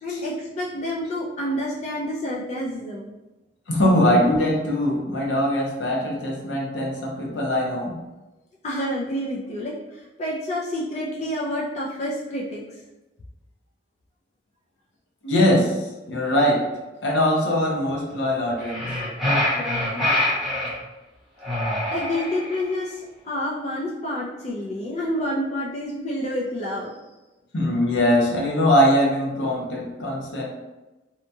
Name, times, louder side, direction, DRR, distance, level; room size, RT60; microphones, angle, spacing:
voice 1, 0.0-3.1 8.6-12.6 19.5-20.0 20.3-20.5 21.9-26.9, left 1 dB, 35° left, -4 dB, 0.4 m, -29 dB
voice 2, 3.7-7.9 15.2-15.7 16.1-16.6 17.0-18.9 27.5-30.4, left 1 dB, 80° left, -2 dB, 0.7 m, -21 dB
sound 1, 18.6-20.8 21.4-22.7, left 1 dB, ahead, 0.9 m, -25 dB
2.8 x 2.2 x 2.6 m, 1.1 s
head